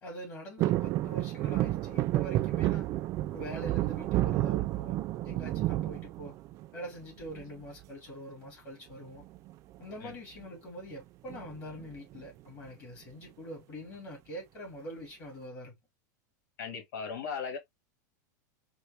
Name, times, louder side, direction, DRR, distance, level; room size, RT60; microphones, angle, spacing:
voice 1, 0.0-2.9 3.3-5.0 5.2-6.3 6.7-9.2 9.8-15.7, equal, 30° left, 2.4 m, -44 dB
sound 1, 0.6-6.8 7.2-7.8 9.1-9.5 9.8-9.9 10.1-10.4 11.3-12.2 12.7-12.8, right 15 dB, 30° right, 0.3 m, -30 dB
voice 2, 16.6-17.6, left 6 dB, 75° left, 1.7 m, -37 dB
4.1 x 2.3 x 3.3 m
supercardioid pair, 145°, 10 cm